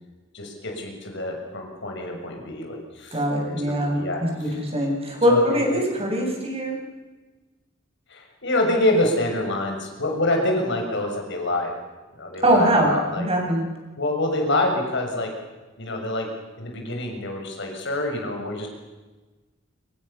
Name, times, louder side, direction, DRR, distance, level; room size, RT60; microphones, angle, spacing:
voice 1, 0.3-4.6 5.3-5.8 8.1-11.7 12.2-13.3 14.0-15.3 15.8-16.3 16.6-18.7, left 1 dB, 60° left, 2 dB, 6.6 m, -26 dB
voice 2, 3.1-3.9 4.4-6.8 12.4-13.7, equal, 30° right, 1 dB, 7.9 m, -22 dB
26.5 x 26.0 x 7.2 m, 1.2 s
head